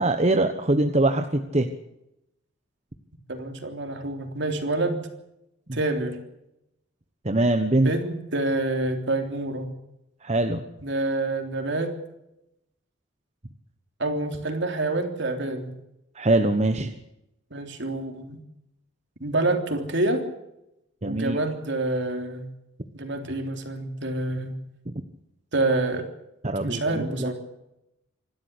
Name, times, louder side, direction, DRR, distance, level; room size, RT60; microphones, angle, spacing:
voice 1, 0.0-1.7 7.2-7.9 10.2-10.6 16.1-16.9 21.0-21.4 24.9-25.0 26.4-27.3, right 2 dB, 35° right, 6 dB, 1.1 m, -23 dB
voice 2, 3.3-5.1 5.7-6.2 7.8-9.7 10.8-11.9 14.0-15.8 17.5-18.4 19.2-20.2 21.0-22.5 22.9-24.6 25.5-26.1 26.5-27.3, right 2 dB, 60° right, 5 dB, 3.3 m, -27 dB
26.5 x 12.5 x 8.3 m, 0.86 s
head